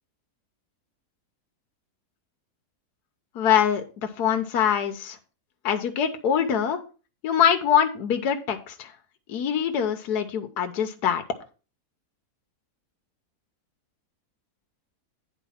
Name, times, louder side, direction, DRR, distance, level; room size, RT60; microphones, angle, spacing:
voice 1, 3.3-5.2 5.6-6.8 7.2-8.9 9.3-11.2, left 8 dB, 75° left, 6 dB, 1.5 m, -24 dB
9.4 x 4.6 x 5.7 m, 0.34 s
omnidirectional pair, 1.7 m